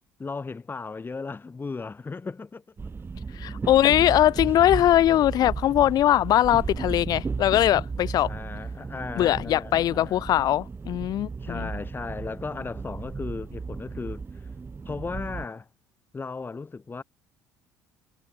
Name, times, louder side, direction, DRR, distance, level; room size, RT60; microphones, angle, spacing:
voice 1, 0.2-2.6 8.2-10.2 11.4-14.5 14.9-15.7 16.1-17.0, left 4 dB, 25° left, 2.4 m, -36 dB
sound 1, 2.8-15.5, right 4 dB, 25° right, 1.2 m, -35 dB
voice 2, 3.3-8.3 9.2-11.7, left 12 dB, 50° left, 0.4 m, -21 dB
hypercardioid pair, 60°, 9 cm